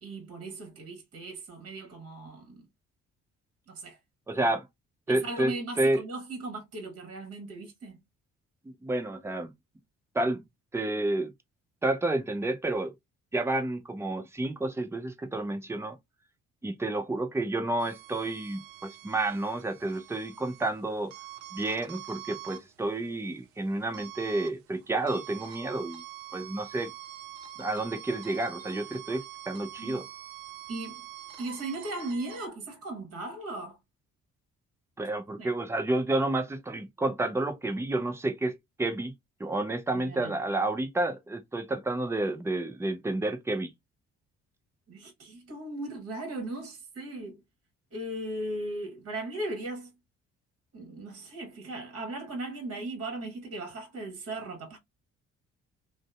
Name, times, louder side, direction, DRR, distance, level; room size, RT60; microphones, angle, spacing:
voice 1, 0.0-2.6 3.7-4.0 4.3-4.5 5.1-8.0 29.8-30.0 30.7-31.0 31.4-33.8 35.4-35.5 39.9-40.4 44.9-47.4 47.9-49.9 50.7-54.8, right 2 dB, 40° right, 1.2 m, -37 dB
voice 2, 4.3-4.6 5.1-6.0 8.7-9.5 10.1-10.4 10.7-11.3 11.8-12.9 13.3-16.0 16.6-21.1 21.5-26.0 26.3-26.9 27.6-30.1 35.0-39.1 39.4-43.7, right 2 dB, 5° right, 0.5 m, -30 dB
sound 1, 17.8-32.5, right 12 dB, 65° right, 0.5 m, -46 dB
2.6 x 2.0 x 2.3 m
hypercardioid pair, 45°, 37 cm